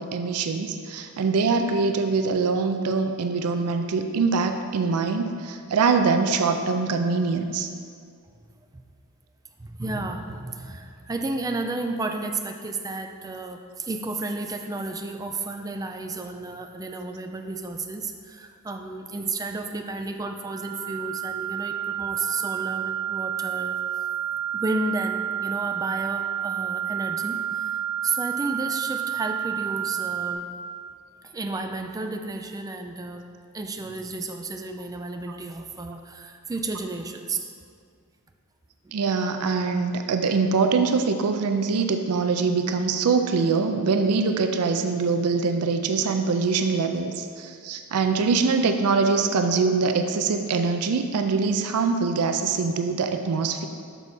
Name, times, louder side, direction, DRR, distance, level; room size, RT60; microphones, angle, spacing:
voice 1, 0.0-7.7 38.9-53.7, right 4 dB, 75° right, 6 dB, 0.4 m, -23 dB
voice 2, 9.6-23.8 24.5-30.5 31.2-33.2 33.5-37.5 38.8-39.0, right 2 dB, 15° right, 4 dB, 0.4 m, -32 dB
sound 1, 20.4-30.3, right 10 dB, 45° right, 0.8 m, -30 dB
6.8 x 4.6 x 4.2 m, 2.2 s
head